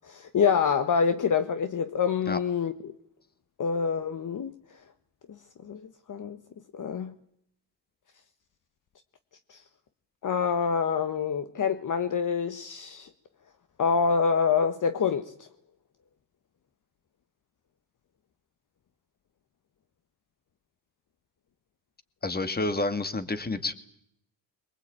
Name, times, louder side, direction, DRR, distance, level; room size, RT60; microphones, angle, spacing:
voice 1, 0.0-2.9 3.6-4.5 5.6-6.4 6.7-7.1 9.5-9.6 10.2-13.1 13.8-15.5, left 6 dB, 45° left, 1.4 m, -26 dB
voice 2, 22.2-23.7, left 2 dB, 20° left, 2.3 m, -29 dB
23.0 x 21.0 x 8.9 m
cardioid pair, 85°, 44 cm